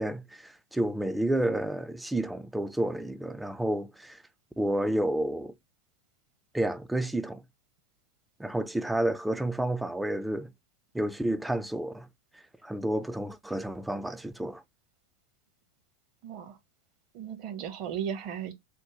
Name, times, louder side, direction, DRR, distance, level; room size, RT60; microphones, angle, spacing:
voice 1, 0.0-4.2 4.6-5.5 6.5-7.4 8.4-10.5 10.9-12.1 12.3-14.6, right 1 dB, 5° right, 0.4 m, -30 dB
voice 2, 16.2-16.6 17.1-18.5, right 8 dB, 45° right, 0.8 m, -35 dB
3.6 x 2.1 x 2.9 m
figure-of-eight pair, 90°, 0 cm